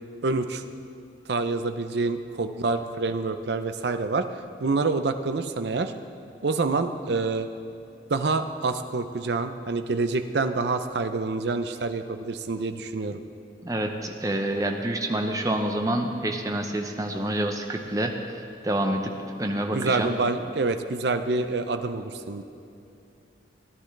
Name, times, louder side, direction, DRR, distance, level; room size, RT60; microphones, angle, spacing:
voice 1, 0.2-0.6 1.3-5.9 6.4-7.5 8.1-13.2 19.7-22.4, right 3 dB, 65° right, 9 dB, 0.6 m, -27 dB
voice 2, 13.6-19.1 19.4-20.2, right 1 dB, 20° right, 4 dB, 0.7 m, -27 dB
16.5 x 10.5 x 3.3 m, 2.6 s
head